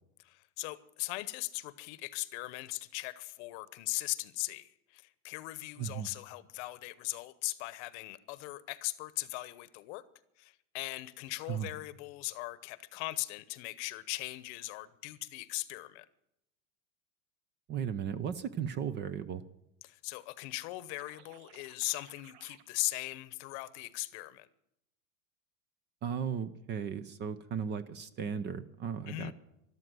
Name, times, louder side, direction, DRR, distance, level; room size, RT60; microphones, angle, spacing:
voice 1, 0.2-10.0 10.4-16.1 19.8-24.5 29.1-29.3, left 20 dB, 50° left, 1.0 m, -39 dB
voice 2, 17.7-19.4 26.0-29.3, right 7 dB, 25° right, 0.6 m, -36 dB
sound 1, 21.0-22.6, right 10 dB, 45° right, 1.0 m, -58 dB
13.0 x 12.5 x 7.6 m
supercardioid pair, 150°, 43 cm